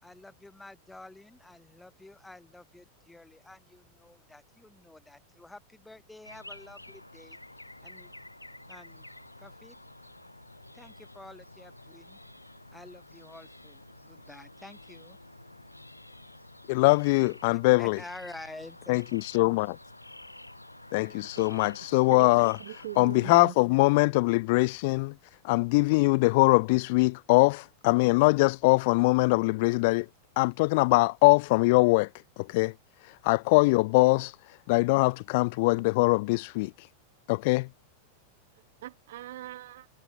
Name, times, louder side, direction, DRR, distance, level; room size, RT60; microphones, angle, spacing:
voice 1, 0.0-7.4 7.8-8.1 8.7-9.0 9.4-9.8 10.7-12.2 12.7-15.2 17.8-19.0, left 2 dB, 5° left, 5.2 m, -49 dB
sound 1, 6.2-23.3, left 1 dB, 85° left, 3.7 m, -50 dB
voice 2, 16.7-18.0 18.9-19.8 20.9-22.6 23.0-25.2 25.4-30.1 30.4-32.1 32.4-32.7 33.0-36.9 37.3-37.7, left 25 dB, 50° left, 0.3 m, -23 dB
voice 3, 22.6-23.5 38.8-39.9, right 14 dB, 55° right, 0.5 m, -40 dB
figure-of-eight pair, 90°, 0 cm